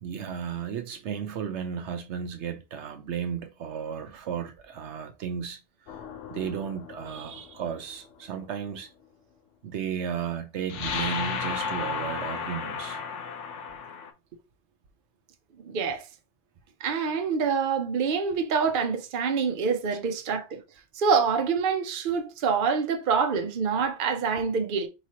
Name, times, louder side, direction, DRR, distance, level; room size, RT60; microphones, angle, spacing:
voice 1, 0.0-5.6 6.3-8.9 9.6-13.0, right 7 dB, 75° right, 1.0 m, -34 dB
sound 1, 5.9-7.8 10.7-14.1, left 5 dB, 80° left, 1.0 m, -34 dB
voice 2, 15.6-16.0 16.8-20.6 21.0-24.9, right 5 dB, 55° right, 0.7 m, -26 dB
4.7 x 3.1 x 2.8 m
omnidirectional pair, 1.2 m